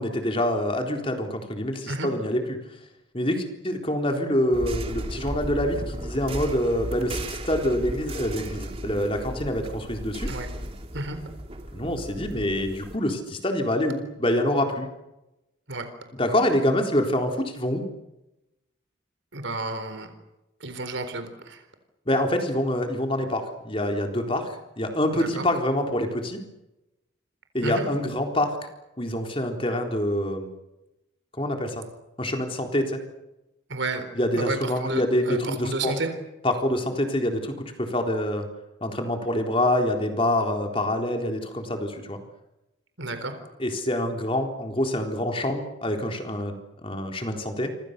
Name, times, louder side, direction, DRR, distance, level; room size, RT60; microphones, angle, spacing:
voice 1, 0.0-2.6 3.1-10.3 11.7-14.9 16.1-17.8 22.1-26.4 27.5-28.5 29.0-30.5 31.4-31.8 32.2-33.0 34.1-35.9 36.4-38.5 38.8-42.2 43.6-46.5 46.8-47.7, left 1 dB, 25° left, 4 dB, 3.9 m, -26 dB
sound 1, 4.5-13.0, right 1 dB, 30° right, 2.7 m, -35 dB
voice 2, 19.3-20.1 20.6-21.6 25.1-25.4 27.6-27.9 33.7-34.1 34.3-36.1 43.0-43.3, right 2 dB, 70° right, 8 dB, 4.1 m, -31 dB
28.5 x 26.0 x 6.8 m, 0.95 s
head